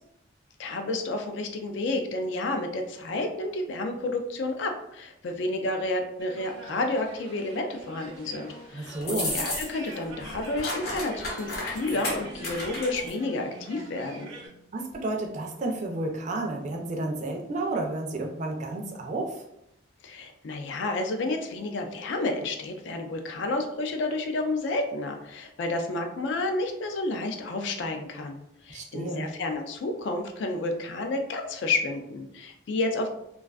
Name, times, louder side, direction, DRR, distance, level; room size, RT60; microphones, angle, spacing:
voice 1, 0.6-14.3 20.0-33.1, left 2 dB, 70° left, 4 dB, 0.4 m, -30 dB
sound 1, 6.2-14.5, right 2 dB, 85° right, 0.6 m, -45 dB
sound 2, 7.8-10.8 11.2-15.0 15.2-15.3, left 1 dB, 15° left, 0.6 m, -49 dB
voice 2, 8.7-9.3 14.7-19.4 28.7-29.3, right 2 dB, 40° right, 1 dB, 0.3 m, -31 dB
sound 3, 9.0-9.9 10.2-13.1, left 1 dB, 50° left, 0.8 m, -33 dB
2.4 x 2.3 x 2.3 m, 0.81 s
head